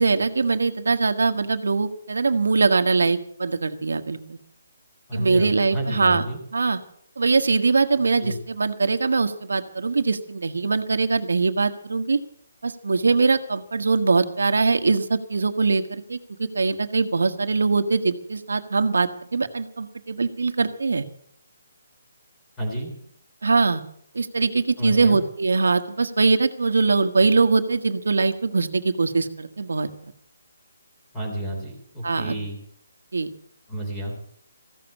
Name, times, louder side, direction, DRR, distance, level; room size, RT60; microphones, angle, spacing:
voice 1, 0.0-4.4 5.1-6.3 6.5-6.8 7.2-12.2 12.6-21.0 23.4-23.8 24.1-29.9 32.0-32.3 33.1-33.3, right 4 dB, 90° right, 8 dB, 1.4 m, -22 dB
voice 2, 5.1-6.4 8.2-8.4 22.6-22.9 24.8-25.2 31.1-32.6 33.7-34.2, right 1 dB, 5° left, -2 dB, 3.7 m, -30 dB
15.5 x 7.3 x 9.8 m, 0.65 s
hypercardioid pair, 175°, 0 cm